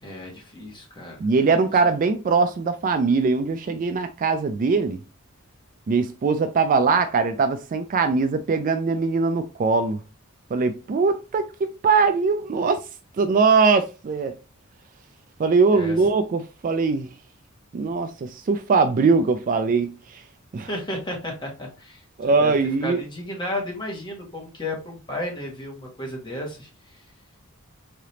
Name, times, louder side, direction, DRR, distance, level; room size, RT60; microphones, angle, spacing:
voice 1, 0.0-1.2 15.7-16.0 20.6-27.0, left 1 dB, 20° left, 1.4 m, -33 dB
voice 2, 1.2-5.0 5.9-10.0 10.5-12.8 13.2-14.3 15.4-17.1 17.7-20.2 20.5-20.7 22.2-23.0, right 4 dB, 40° right, 0.3 m, -21 dB
3.7 x 3.3 x 2.8 m
head